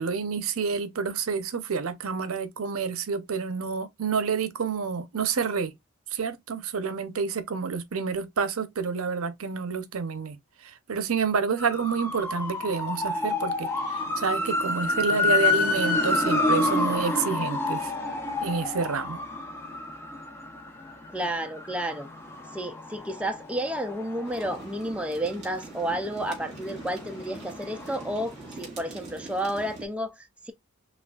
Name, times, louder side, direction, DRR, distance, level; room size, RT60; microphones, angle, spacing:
voice 1, 0.0-5.7 6.1-10.4 10.6-17.9 18.4-19.2, right 5 dB, 75° right, 0.6 m, -29 dB
sound 1, 11.6-25.3 25.7-28.3 28.5-28.6, left 2 dB, 10° left, 0.8 m, -29 dB
voice 2, 21.1-22.1 22.5-30.5, right 1 dB, 5° right, 0.3 m, -31 dB
sound 2, 24.2-29.9, right 3 dB, 30° right, 2.9 m, -43 dB
5.8 x 2.3 x 2.3 m
head